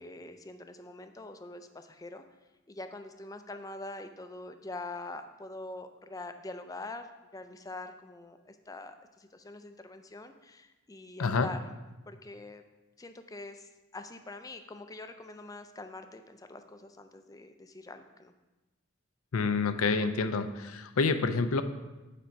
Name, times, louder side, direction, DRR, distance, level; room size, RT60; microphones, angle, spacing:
voice 1, 0.0-2.2 2.7-7.1 7.3-11.6 12.1-12.6 13.0-18.3, left 2 dB, 15° left, 8 dB, 0.4 m, -44 dB
voice 2, 11.2-11.5 19.3-21.6, left 4 dB, 85° left, 10 dB, 0.6 m, -28 dB
8.6 x 5.1 x 4.5 m, 1.1 s
head